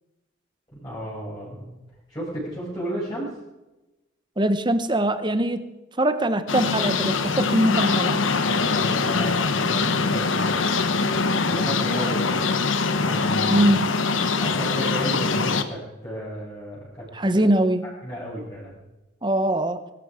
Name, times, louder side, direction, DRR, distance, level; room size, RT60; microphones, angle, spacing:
voice 1, 0.7-1.8 2.1-3.3 8.3-11.1 11.5-12.5 13.0-13.7 14.4-17.1 18.0-18.8, right 1 dB, 20° left, -9 dB, 6.2 m, -33 dB
voice 2, 4.4-5.7 6.0-8.2 13.5-13.9 17.1-17.9 19.2-19.8, right 1 dB, 25° right, 11 dB, 0.9 m, -22 dB
sound 1, 6.5-15.6, left 4 dB, 80° left, 1.1 m, -23 dB
21.5 x 13.0 x 5.0 m, 1.0 s
head